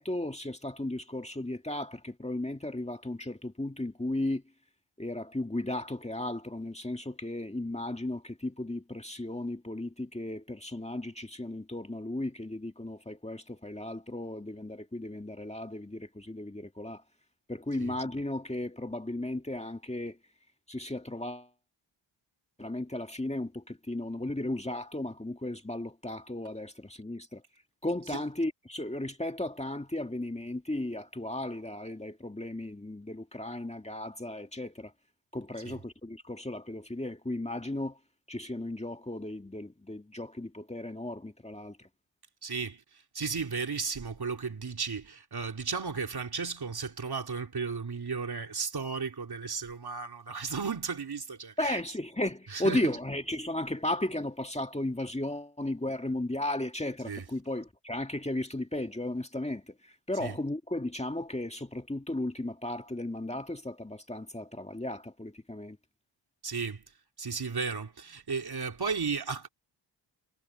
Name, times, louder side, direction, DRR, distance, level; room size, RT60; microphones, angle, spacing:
voice 1, 0.0-4.4 5.0-17.0 17.5-20.2 20.7-21.5 22.6-27.4 27.8-34.9 35.3-38.0 38.3-41.9 51.6-65.8, left 1 dB, 15° left, 2.1 m, -35 dB
voice 2, 42.4-51.8 52.5-53.0 57.0-57.3 60.1-60.4 66.4-66.8 67.2-69.5, right 5 dB, 50° right, 3.3 m, -35 dB
cardioid pair, 50°, 50 cm